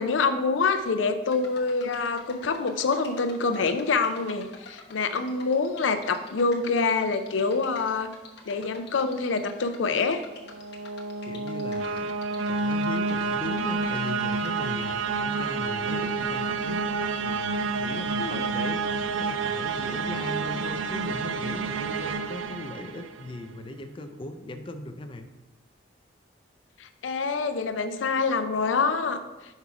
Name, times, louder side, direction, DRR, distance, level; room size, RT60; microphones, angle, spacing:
voice 1, 0.0-8.1 8.5-10.2 18.2-18.5 26.8-29.2, left 4 dB, 90° left, 9 dB, 0.5 m, -26 dB
sound 1, 1.3-14.9, left 4 dB, 60° left, 0.9 m, -48 dB
sound 2, 10.4-23.4, right 4 dB, 90° right, 0.4 m, -29 dB
voice 2, 11.2-12.1 12.5-25.3, left 2 dB, 25° left, 7 dB, 0.4 m, -39 dB
5.5 x 4.9 x 4.7 m, 1.1 s
head